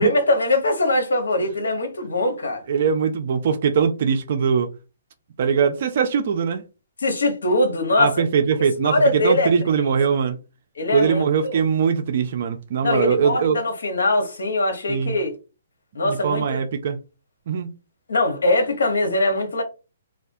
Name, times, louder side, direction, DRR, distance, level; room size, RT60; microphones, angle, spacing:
voice 1, 0.0-2.6 7.0-8.1 8.8-9.5 10.7-11.6 12.8-15.3 15.9-16.6 18.1-19.6, left 2 dB, 80° left, 1.0 m, -22 dB
voice 2, 2.7-4.7 5.4-6.6 8.0-10.4 10.9-13.6 14.9-15.1 16.0-17.0 17.5-17.7, right 6 dB, 55° right, 0.4 m, -21 dB
2.4 x 2.2 x 2.6 m
hypercardioid pair, 140°, 0 cm